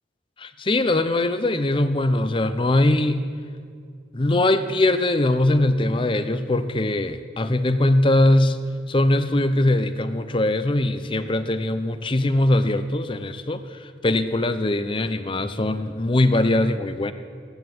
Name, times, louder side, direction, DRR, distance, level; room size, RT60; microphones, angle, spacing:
voice 1, 0.4-3.2 4.1-8.6 8.9-17.1, left 1 dB, 25° left, 11 dB, 0.6 m, -21 dB
16.0 x 10.5 x 7.8 m, 2.2 s
head